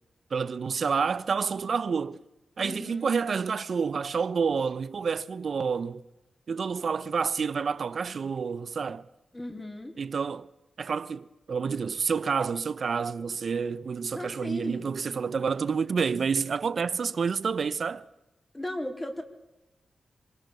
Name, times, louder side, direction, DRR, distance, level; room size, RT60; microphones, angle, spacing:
voice 1, 0.3-2.2 2.6-6.0 6.5-9.0 10.0-10.5 10.8-18.0, right 5 dB, 70° right, 1.0 m, -29 dB
voice 2, 2.6-3.1 9.3-9.9 14.1-14.9 18.5-19.2, left 1 dB, 20° left, 4.0 m, -36 dB
26.0 x 24.0 x 7.1 m
cardioid pair, 70°, 0 cm